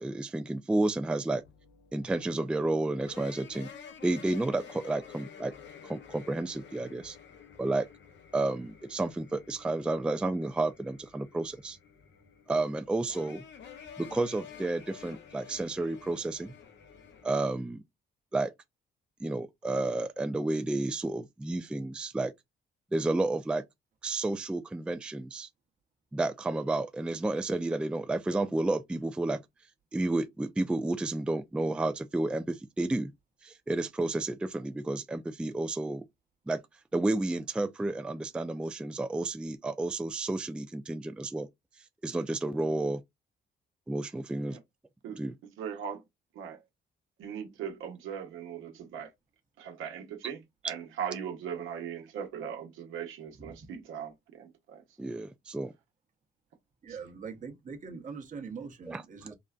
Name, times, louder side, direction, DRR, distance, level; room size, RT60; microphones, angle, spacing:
voice 1, 0.0-1.4 1.9-3.7 4.0-5.5 5.8-7.2 7.6-7.9 8.3-11.8 12.5-13.4 14.0-16.5 17.2-17.8 18.3-18.5 19.2-22.3 22.9-23.6 24.0-25.5 26.1-29.4 29.9-33.1 33.4-36.0 36.5-36.6 36.9-41.5 42.0-43.0 43.9-44.6 45.2-45.3 55.0-55.7 58.9-59.0, right 2 dB, 5° right, 0.3 m, -31 dB
sound 1, 1.0-17.3, left 7 dB, 65° left, 0.7 m, -51 dB
voice 2, 45.0-46.0 46.3-46.6 47.2-49.1 49.6-54.8 56.9-57.0, right 8 dB, 85° right, 0.9 m, -39 dB
voice 3, 56.8-59.3, right 5 dB, 40° right, 0.9 m, -42 dB
3.8 x 2.1 x 2.3 m
cardioid pair, 90°, 20 cm